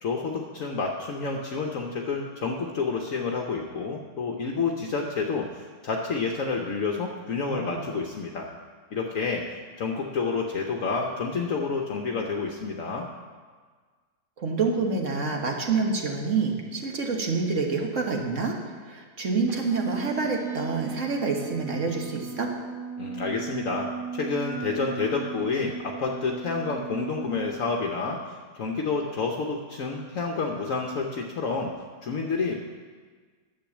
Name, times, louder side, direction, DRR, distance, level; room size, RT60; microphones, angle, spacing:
voice 1, 0.0-8.5 8.9-9.4 9.8-13.1 23.0-31.7 32.0-32.6, left 4 dB, 60° left, 1 dB, 1.2 m, -29 dB
voice 2, 7.4-7.8 14.4-22.5, right 4 dB, 50° right, 1 dB, 1.6 m, -27 dB
sound 1, 19.5-27.5, right 5 dB, 35° right, 1.5 m, -36 dB
10.0 x 7.7 x 7.2 m, 1.5 s
omnidirectional pair, 1.7 m